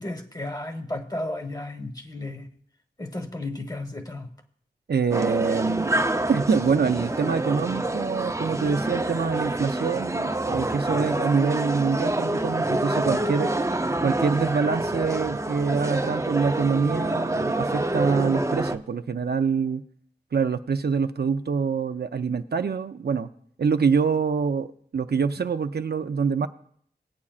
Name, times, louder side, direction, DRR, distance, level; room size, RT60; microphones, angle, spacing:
voice 1, 0.0-2.5 3.0-4.3, left 1 dB, 20° left, 5 dB, 1.2 m, -33 dB
voice 2, 4.9-6.0 6.3-13.5 14.0-19.8 20.3-23.3 23.6-26.5, right 5 dB, 70° right, 7 dB, 0.5 m, -25 dB
sound 1, 5.1-18.8, right 2 dB, 15° right, 0.5 m, -27 dB
18.5 x 8.4 x 2.4 m, 0.64 s
wide cardioid pair, 50°, 17 cm